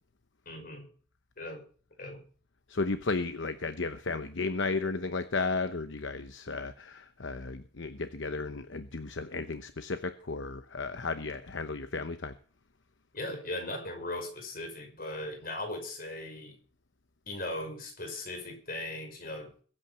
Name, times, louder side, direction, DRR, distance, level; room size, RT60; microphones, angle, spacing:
voice 1, 0.5-0.9 1.4-1.6 2.0-2.2 13.1-16.6 17.3-19.5, left 1 dB, 45° left, 4 dB, 5.4 m, -38 dB
voice 2, 2.7-12.4, left 3 dB, 65° left, 10 dB, 0.9 m, -34 dB
22.0 x 8.9 x 5.7 m, 0.43 s
head